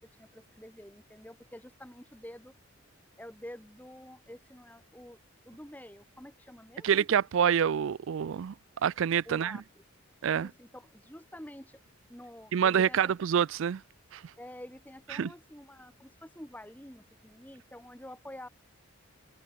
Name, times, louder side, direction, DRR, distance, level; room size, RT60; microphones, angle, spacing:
voice 1, 0.2-2.5 3.2-5.2 5.4-7.1 9.3-9.8 10.3-11.8 12.1-13.2 14.4-18.5, left 1 dB, 5° left, 2.4 m, -48 dB
voice 2, 6.8-8.5 8.8-9.6 10.2-10.5 12.5-13.8 14.1-14.2 15.1-15.3, right 8 dB, 60° right, 0.3 m, -26 dB
head